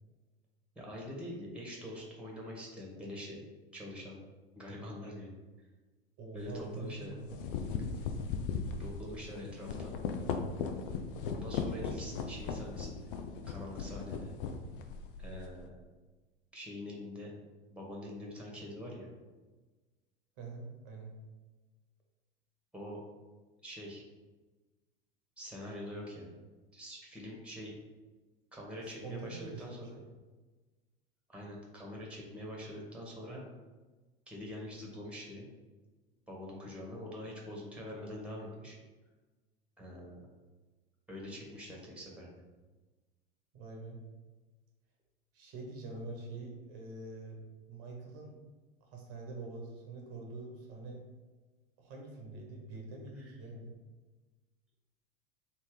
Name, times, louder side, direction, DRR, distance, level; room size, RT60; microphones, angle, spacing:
voice 1, 0.7-3.4 3.7-4.2 4.5-5.4 6.3-7.1 8.8-9.9 11.3-13.1 13.5-14.3 15.2-15.7 16.5-17.3 17.7-19.1 22.7-23.0 23.6-24.0 25.4-26.3 26.7-27.7 28.5-30.0 31.3-33.4 34.3-35.5 36.3-38.8 39.8-40.2 41.1-42.3 53.1-53.4, left 1 dB, 5° right, -2 dB, 1.4 m, -44 dB
voice 2, 6.2-7.5 20.4-21.1 28.8-30.1 43.5-44.0 45.3-47.4 47.7-48.4 48.8-51.0 51.8-53.7, right 3 dB, 50° right, 0 dB, 1.1 m, -45 dB
sound 1, 6.4-6.6 7.1-15.5, left 5 dB, 60° left, 0.6 m, -38 dB
3.4 x 2.8 x 4.7 m, 1.3 s
hypercardioid pair, 85°, 31 cm